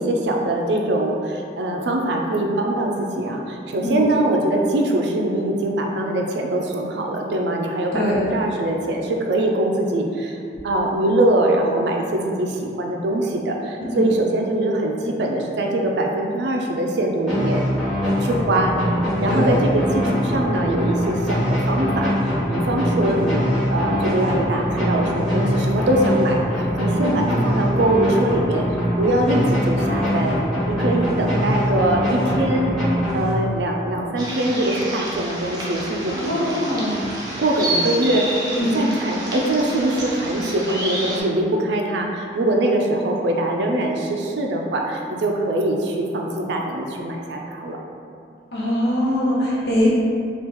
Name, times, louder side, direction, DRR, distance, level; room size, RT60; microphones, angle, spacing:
voice 1, 0.0-10.4 10.6-17.6 18.2-18.8 19.2-22.1 22.5-28.6 29.0-32.8 33.1-36.6 37.4-47.8, right 1 dB, 70° right, 1 dB, 0.4 m, -22 dB
sound 1, 17.3-33.8, equal, ahead, 0.9 m, -22 dB
sound 2, 34.2-41.2, right 1 dB, 20° right, 0.6 m, -29 dB
voice 2, 36.1-37.1 38.6-38.9 48.5-49.9, left 1 dB, 65° left, -6 dB, 0.7 m, -22 dB
2.9 x 2.4 x 3.6 m, 2.4 s
head